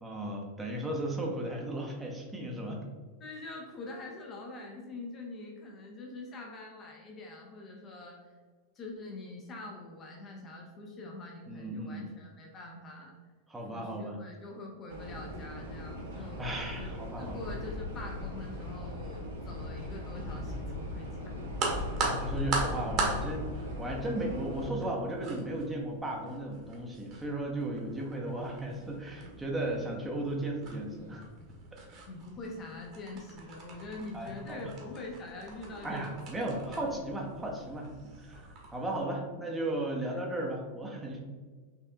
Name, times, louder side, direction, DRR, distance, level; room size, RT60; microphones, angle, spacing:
voice 1, 0.0-2.8 11.5-12.1 13.5-14.2 16.4-17.5 22.0-31.2 34.1-34.7 35.8-41.2, right 1 dB, 10° right, -1 dB, 0.8 m, -35 dB
voice 2, 3.2-8.2 8.7-13.1 13.7-16.9 17.2-21.4 32.1-36.2 36.7-36.9 40.1-40.2, left 2 dB, 30° left, 0 dB, 0.8 m, -44 dB
sound 1, 14.9-24.7, left 1 dB, 70° right, 1.3 m, -39 dB
sound 2, 21.5-39.0, right 3 dB, 40° right, 1.2 m, -40 dB
5.6 x 3.5 x 2.3 m, 1.5 s
figure-of-eight pair, 90°, 0 cm